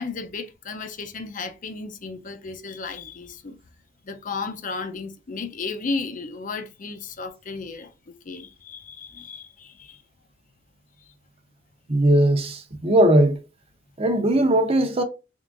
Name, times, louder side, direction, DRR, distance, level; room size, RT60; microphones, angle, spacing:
voice 1, 0.0-3.6 4.0-10.0 11.0-11.1, left 4 dB, 45° left, 0.6 m, -34 dB
voice 2, 11.9-13.4 14.0-15.0, right 1 dB, 30° right, 0.7 m, -19 dB
3.6 x 3.6 x 2.5 m
head